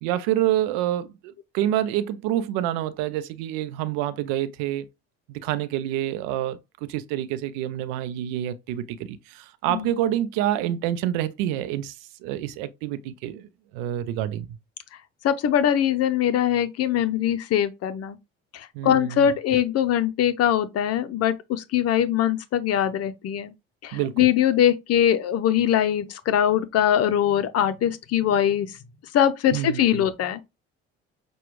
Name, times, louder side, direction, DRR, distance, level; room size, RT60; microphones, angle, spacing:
voice 1, 0.0-4.9 5.3-12.0 12.2-13.5 13.7-14.5 18.7-19.3 23.9-24.2 29.5-30.1, right 12 dB, 85° right, 0.5 m, -27 dB
voice 2, 15.2-18.2 18.5-23.5 23.8-28.8 29.1-30.4, left 10 dB, 55° left, 0.6 m, -22 dB
6.1 x 2.3 x 3.0 m
supercardioid pair, 75°, 29 cm